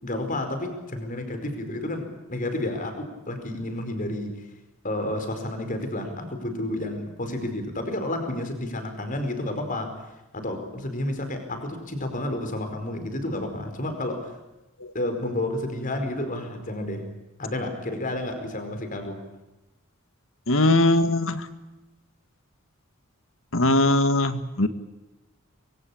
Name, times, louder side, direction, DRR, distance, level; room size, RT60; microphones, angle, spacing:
voice 1, 0.0-4.4 4.8-9.9 10.3-14.3 14.9-17.1 17.4-19.2, left 1 dB, 40° left, 7 dB, 4.8 m, -30 dB
voice 2, 20.5-21.4 23.5-24.7, left 2 dB, 70° left, 10 dB, 1.8 m, -20 dB
25.0 x 23.5 x 8.6 m, 0.99 s
head